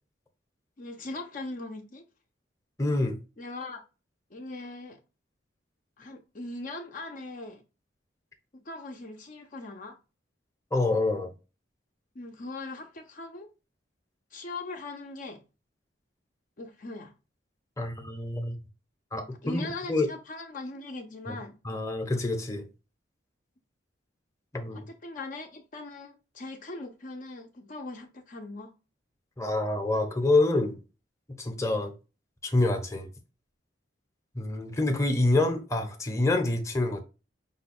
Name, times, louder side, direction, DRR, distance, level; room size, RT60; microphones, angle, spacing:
voice 1, 0.8-2.0 3.4-3.8 4.3-5.0 6.0-7.6 8.5-10.0 12.1-13.5 14.3-15.4 16.6-17.1 19.4-21.6 24.7-28.7, left 2 dB, 45° left, 0.6 m, -40 dB
voice 2, 2.8-3.2 10.7-11.3 17.8-18.6 19.1-20.1 21.6-22.6 24.5-24.9 29.4-30.8 31.4-31.9 32.4-33.1 34.3-37.0, left 2 dB, 15° left, 0.8 m, -27 dB
5.6 x 2.2 x 4.2 m
head